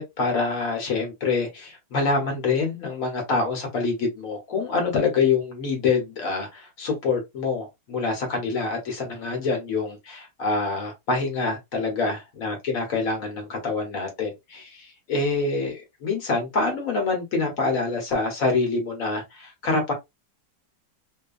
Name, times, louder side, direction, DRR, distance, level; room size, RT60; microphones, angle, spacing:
voice 1, 0.0-19.9, left 4 dB, 55° left, 1.3 m, -26 dB
3.0 x 2.2 x 2.3 m
omnidirectional pair, 1.9 m